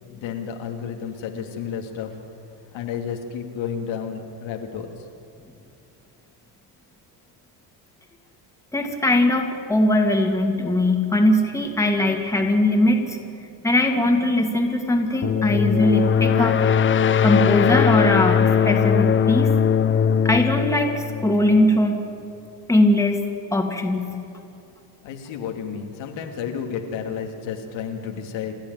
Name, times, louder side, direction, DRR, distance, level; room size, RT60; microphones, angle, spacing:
voice 1, 0.0-2.1 2.7-4.9 25.0-28.5, left 7 dB, 85° left, 3 dB, 2.7 m, -31 dB
voice 2, 8.7-13.2 13.6-16.6 17.2-19.6 20.2-22.0 22.7-23.2 23.5-24.1, left 1 dB, 5° left, 2 dB, 2.3 m, -20 dB
sound 1, 15.2-21.9, left 7 dB, 30° left, 0.6 m, -20 dB
28.5 x 12.0 x 9.6 m, 2.6 s
cardioid pair, 130°, 44 cm